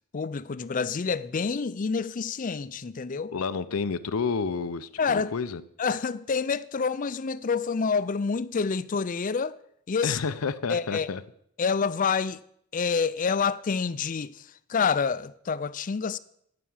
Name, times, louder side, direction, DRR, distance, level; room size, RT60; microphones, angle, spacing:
voice 1, 0.1-3.3 5.0-5.3 5.8-9.6 9.9-10.2 10.7-11.1 11.6-12.4 12.7-16.2, left 5 dB, 40° left, 0.4 m, -27 dB
voice 2, 3.3-5.6 10.0-11.2, left 5 dB, 85° left, 0.6 m, -30 dB
11.0 x 5.9 x 8.7 m
head